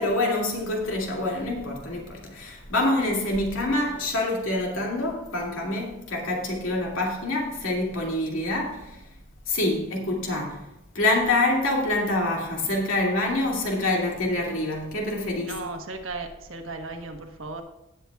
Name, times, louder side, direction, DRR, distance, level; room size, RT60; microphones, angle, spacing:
voice 1, 0.0-9.0 9.5-10.6 10.9-15.6, left 2 dB, 90° left, 2.4 m, -26 dB
voice 2, 15.4-17.6, right 3 dB, 75° right, 1.3 m, -36 dB
17.0 x 7.9 x 2.4 m
head